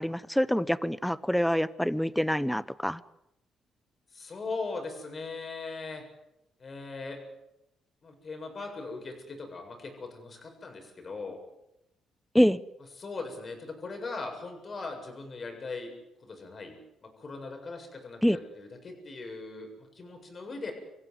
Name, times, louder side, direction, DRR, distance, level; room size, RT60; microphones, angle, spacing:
voice 1, 0.0-3.0 12.3-12.6 18.2-18.4, equal, ahead, 18 dB, 0.9 m, -26 dB
voice 2, 4.1-6.0 6.6-7.2 8.0-11.4 13.0-15.9 16.2-20.7, left 3 dB, 40° left, 4 dB, 7.5 m, -39 dB
26.5 x 15.5 x 9.5 m, 0.86 s
cardioid pair, 90°, 0 cm